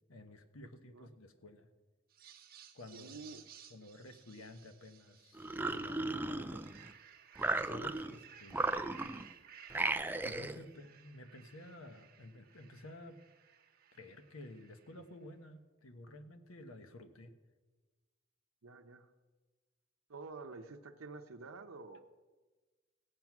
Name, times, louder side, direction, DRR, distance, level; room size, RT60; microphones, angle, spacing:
voice 1, 0.1-1.7 2.7-3.2 3.7-6.9 7.6-8.6 10.2-13.2 13.9-17.3, left 1 dB, 85° left, 8 dB, 1.1 m, -52 dB
sound 1, 2.1-6.0 6.4-15.1, right 8 dB, 50° right, 1.2 m, -58 dB
voice 2, 2.9-3.4 18.6-19.1 20.1-22.0, right 3 dB, 90° right, 5 dB, 0.8 m, -49 dB
sound 2, 5.4-6.9 7.4-8.2 8.5-9.3 9.7-10.6, right 2 dB, 10° right, 0.4 m, -36 dB
17.0 x 7.8 x 6.0 m, 1.3 s
head